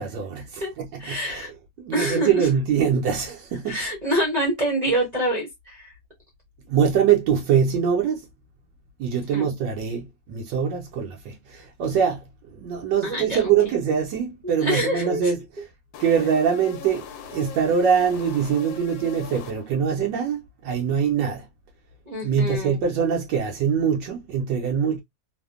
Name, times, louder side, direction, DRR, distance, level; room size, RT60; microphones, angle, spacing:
voice 1, 0.0-3.8 6.7-8.3 9.0-15.4 16.0-21.5 22.2-25.0, right 7 dB, 75° right, 1.2 m, -23 dB
voice 2, 1.0-1.5 1.9-2.3 3.7-5.9 9.3-9.5 13.0-13.4 14.6-15.2 22.1-22.8, equal, 40° right, 0.6 m, -26 dB
sound 1, 15.9-20.0, left 6 dB, 80° left, 1.3 m, -40 dB
3.2 x 2.1 x 2.3 m
omnidirectional pair, 2.1 m